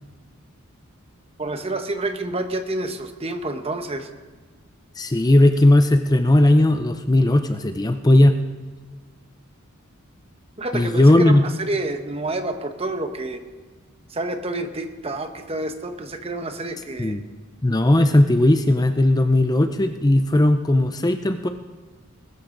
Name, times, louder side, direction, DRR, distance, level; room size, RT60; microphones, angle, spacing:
voice 1, 1.4-4.1 10.6-13.4 14.1-17.2 18.1-18.2, right 2 dB, 30° right, 7 dB, 1.1 m, -29 dB
voice 2, 5.0-8.4 10.7-11.4 17.0-17.2 17.6-21.5, left 1 dB, 20° left, 8 dB, 0.5 m, -17 dB
20.5 x 13.0 x 3.9 m, 1.4 s
head